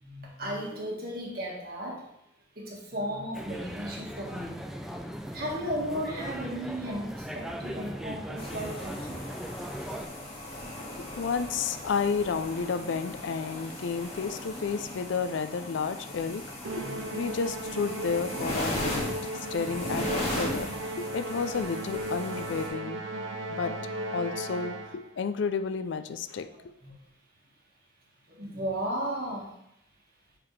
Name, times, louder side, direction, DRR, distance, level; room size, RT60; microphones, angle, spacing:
voice 1, 0.0-2.0 2.6-4.5 5.3-9.2 16.8-17.0 19.6-19.7 26.5-26.9 28.3-29.5, equal, 50° right, -2 dB, 1.7 m, -35 dB
sound 1, 3.3-10.1, equal, ahead, 0.3 m, -38 dB
sound 2, 8.4-22.7, left 1 dB, 30° left, 2.4 m, -37 dB
voice 2, 11.0-16.4 16.7-23.0 23.5-23.7 24.1-26.5, left 5 dB, 70° left, 11 dB, 0.4 m, -31 dB
Musical instrument, 16.6-25.1, right 1 dB, 75° right, 0.6 m, -36 dB
8.8 x 4.0 x 3.2 m, 0.77 s
head